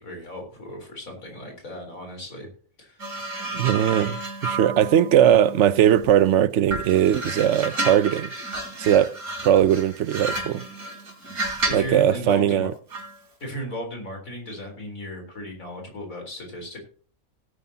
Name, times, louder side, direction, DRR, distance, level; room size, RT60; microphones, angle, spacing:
voice 1, 0.0-2.5 2.8-3.7 11.6-12.7 13.4-16.8, equal, 65° left, 4.2 m, -36 dB
sound 1, 3.0-6.2 6.7-12.0 12.9-13.2, right 2 dB, 85° right, 3.8 m, -31 dB
voice 2, 3.5-8.3 8.8-9.1 9.4-10.6 11.7-12.7, right 10 dB, 65° right, 0.8 m, -19 dB
17.0 x 9.3 x 2.8 m
omnidirectional pair, 1.5 m